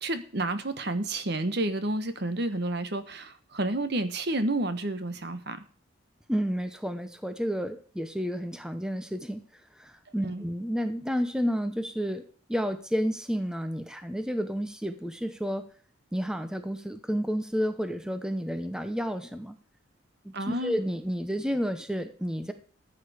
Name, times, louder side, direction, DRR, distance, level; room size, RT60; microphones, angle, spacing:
voice 1, 0.0-5.6 10.2-10.4 20.3-20.8, right 2 dB, 55° right, 11 dB, 1.2 m, -30 dB
voice 2, 6.3-9.4 9.8-12.2 12.5-15.6 16.1-19.5 20.2-22.5, equal, 5° right, 9 dB, 0.9 m, -31 dB
14.0 x 8.7 x 5.0 m, 0.44 s
head